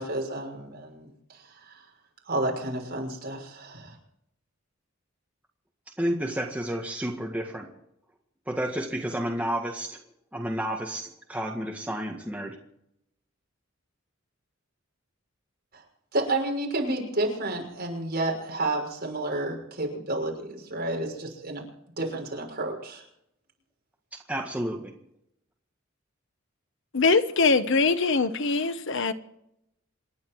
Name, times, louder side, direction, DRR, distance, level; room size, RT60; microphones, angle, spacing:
voice 1, 0.0-1.8 2.3-3.9 15.7-15.8 16.1-21.6 22.0-23.0, right 2 dB, 50° right, 6.3 m, -31 dB
voice 2, 6.0-7.7 8.5-10.0 10.3-12.6 24.3-25.0, right 1 dB, 5° right, 1.7 m, -31 dB
voice 3, 26.9-29.1, left 4 dB, 70° left, 1.2 m, -22 dB
28.0 x 10.5 x 4.7 m
head